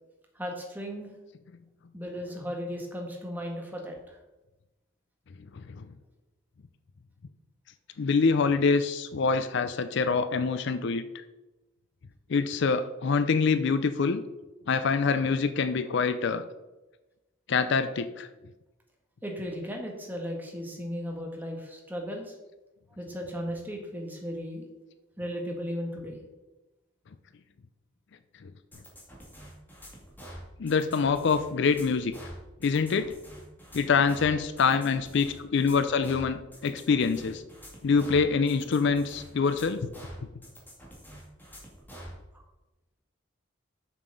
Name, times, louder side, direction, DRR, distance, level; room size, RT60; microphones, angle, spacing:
voice 1, 0.3-1.1 1.9-4.2 19.2-22.4 23.0-24.6 25.2-26.2 42.3-42.4, equal, 10° right, 0 dB, 1.5 m, -36 dB
voice 2, 5.5-5.9 8.0-11.2 12.3-14.2 14.7-16.4 17.5-18.3 28.4-28.5 30.6-32.1 32.6-33.1 33.7-37.4 37.8-39.9, left 5 dB, 60° left, 11 dB, 0.4 m, -25 dB
sound 1, 28.7-42.2, equal, 10° left, 2.2 m, -46 dB
7.1 x 6.6 x 5.2 m, 1.1 s
head